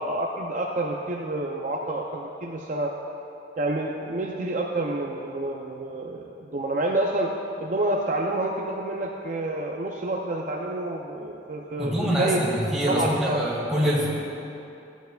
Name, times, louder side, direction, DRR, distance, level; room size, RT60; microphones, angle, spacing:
voice 1, 0.0-2.9 3.6-7.3 7.6-12.4 12.9-13.5, right 1 dB, 40° right, 0 dB, 0.5 m, -28 dB
voice 2, 11.8-14.1, equal, 5° right, -7 dB, 1.9 m, -24 dB
14.0 x 9.0 x 2.3 m, 2.8 s
head